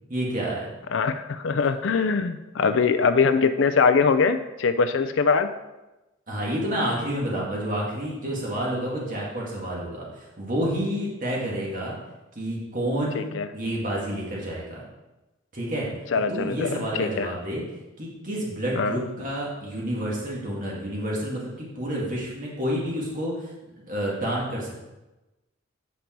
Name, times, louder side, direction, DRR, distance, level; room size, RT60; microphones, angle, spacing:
voice 1, 0.1-0.7 6.3-12.0 12.4-14.8 15.5-15.9 16.3-17.6 18.0-23.5 23.9-24.8, equal, 40° right, -4 dB, 2.2 m, -29 dB
voice 2, 0.9-5.5 13.1-13.5 16.1-17.3 18.7-19.0, left 5 dB, 70° left, 10 dB, 0.4 m, -22 dB
8.6 x 5.2 x 4.5 m, 1.0 s
head